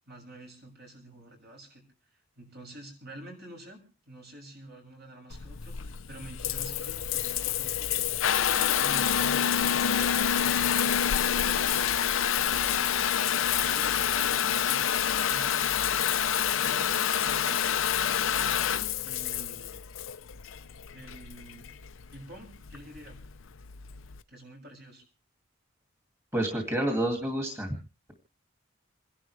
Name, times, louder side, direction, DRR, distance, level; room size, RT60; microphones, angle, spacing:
voice 1, 0.0-1.8 2.3-8.1 8.7-11.8 12.3-13.0 13.6-15.7 16.2-17.8 19.0-19.8 20.9-21.7 22.1-23.2 24.3-25.0, right 1 dB, 55° right, 2 dB, 7.0 m, -48 dB
Water tap faucet / Bathtub (filling or washing) / Trickle dribble, 5.3-24.2, left 9 dB, 85° left, 0.7 m, -27 dB
voice 2, 26.3-27.7, right 1 dB, 15° right, 3 dB, 2.5 m, -29 dB
28.0 x 11.5 x 3.4 m, 0.33 s
head